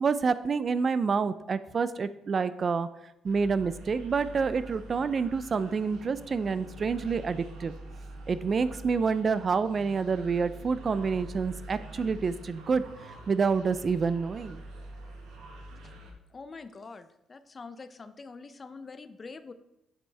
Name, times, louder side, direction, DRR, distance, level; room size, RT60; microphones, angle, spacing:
voice 1, 0.0-2.9 3.2-7.7 8.3-12.8 13.3-14.6, right 5 dB, 45° right, 14 dB, 0.3 m, -28 dB
sound 1, 3.2-16.1, right 1 dB, 85° right, 1.1 m, -45 dB
voice 2, 16.3-19.5, left 4 dB, 35° left, 11 dB, 0.5 m, -45 dB
7.8 x 5.5 x 3.3 m, 0.85 s
cardioid pair, 90°, 0 cm